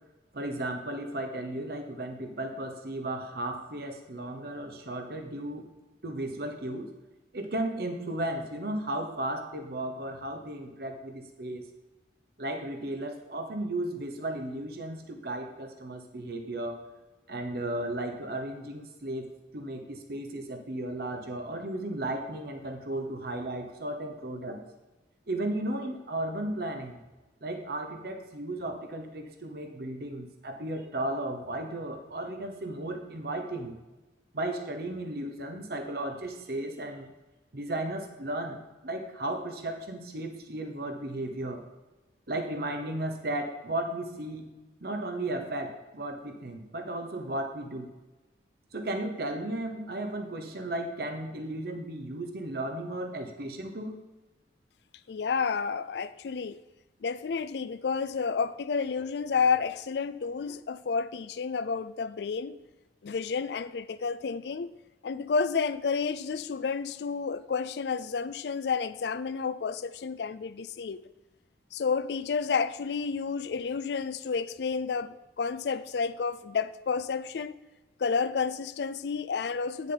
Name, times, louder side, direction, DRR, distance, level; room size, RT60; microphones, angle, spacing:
voice 1, 0.3-5.7 6.0-6.9 7.3-11.6 12.4-16.8 17.3-24.6 25.3-27.0 27.4-33.8 34.3-37.1 37.5-38.6 38.8-41.6 42.3-44.5 44.8-47.9 48.7-54.0, right 1 dB, 60° right, 0.9 m, -35 dB
voice 2, 55.1-56.6 57.0-62.5 63.0-64.7 65.0-71.0 71.7-77.5 78.0-79.9, left 5 dB, 70° left, 0.4 m, -30 dB
9.5 x 7.2 x 3.9 m
head